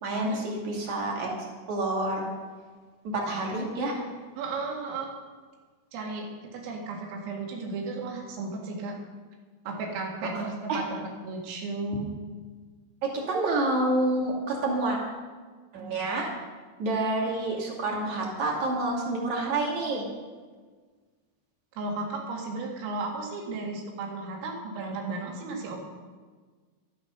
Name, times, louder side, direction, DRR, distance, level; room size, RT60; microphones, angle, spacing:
voice 1, 0.0-2.2 3.1-3.9 10.7-10.8 13.0-15.0 15.7-16.3 16.8-20.0, right 2 dB, 45° right, -1 dB, 3.0 m, -28 dB
voice 2, 4.4-5.1 5.9-9.0 9.7-12.1 21.8-25.8, right 3 dB, 85° right, 0 dB, 4.7 m, -34 dB
12.5 x 12.0 x 5.9 m, 1.4 s
omnidirectional pair, 5.8 m